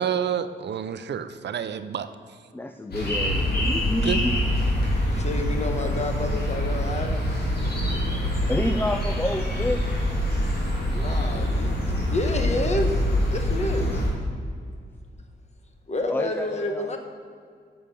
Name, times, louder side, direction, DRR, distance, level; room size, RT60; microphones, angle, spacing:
voice 1, 0.0-2.1 4.0-4.2, right 8 dB, 70° right, 11 dB, 0.6 m, -28 dB
voice 2, 2.5-4.4 8.1-8.2 8.5-10.0 16.1-17.0, left 1 dB, 10° left, 7 dB, 0.5 m, -29 dB
sound 1, 2.9-14.1, equal, 55° left, 3.1 m, -25 dB
voice 3, 5.1-7.3 10.9-13.0 13.3-14.0 15.9-17.0, left 2 dB, 35° left, 4 dB, 1.3 m, -29 dB
9.0 x 7.0 x 7.0 m, 2.1 s
wide cardioid pair, 110°, 19 cm